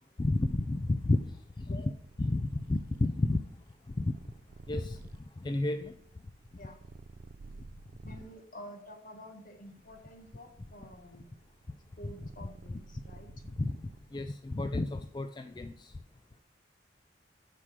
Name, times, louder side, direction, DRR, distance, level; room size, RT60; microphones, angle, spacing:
voice 1, 0.2-1.8 2.2-3.4 3.9-4.1 4.7-5.0 5.4-5.9 8.0-8.2 12.0-12.1 13.4-13.8 14.1-15.9, left 2 dB, 25° left, 8 dB, 0.3 m, -31 dB
Purr, 1.9-8.4 9.1-14.3, right 3 dB, 50° right, 0.4 m, -53 dB
voice 2, 6.5-6.9 8.0-11.3 12.0-13.3, equal, 50° left, 4 dB, 1.3 m, -49 dB
7.3 x 4.9 x 6.0 m, 0.65 s
head